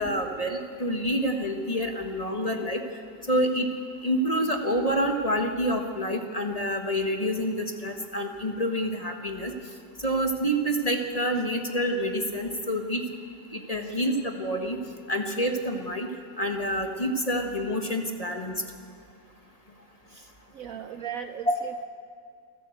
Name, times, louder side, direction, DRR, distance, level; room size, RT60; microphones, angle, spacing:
voice 1, 0.0-2.8 3.3-3.7 4.0-9.5 10.0-13.0 13.5-14.8 15.1-16.1 16.4-18.5, equal, 20° left, 3 dB, 1.4 m, -27 dB
voice 2, 20.1-21.8, right 8 dB, 65° right, 9 dB, 0.9 m, -39 dB
28.0 x 12.5 x 8.0 m, 2.2 s
omnidirectional pair, 1.9 m